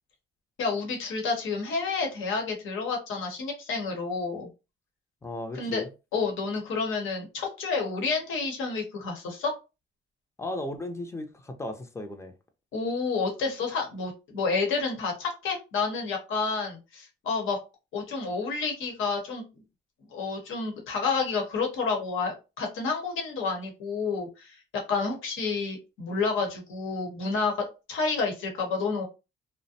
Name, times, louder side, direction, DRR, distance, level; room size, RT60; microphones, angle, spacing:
voice 1, 0.6-4.5 5.5-5.8 6.1-9.5 12.7-17.6 17.9-19.4 20.1-24.6 24.9-27.5 27.9-29.0, left 4 dB, 80° left, 0.9 m, -29 dB
voice 2, 5.2-5.9 10.4-12.3, left 1 dB, 15° left, 0.5 m, -35 dB
2.5 x 2.1 x 2.7 m
cardioid pair, 90°, 20 cm